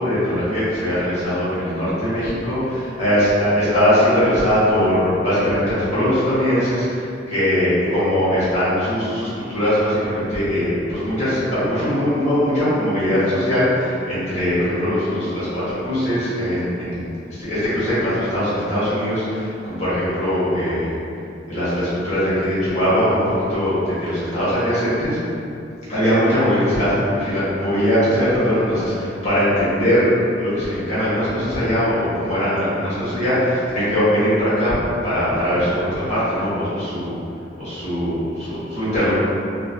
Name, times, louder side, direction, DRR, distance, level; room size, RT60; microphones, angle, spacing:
voice 1, 0.0-20.9 21.5-25.2 25.9-30.0 30.4-34.7 35.0-37.2 37.6-39.1, equal, 40° left, -12 dB, 1.3 m, -21 dB
3.0 x 2.8 x 2.7 m, 2.7 s
head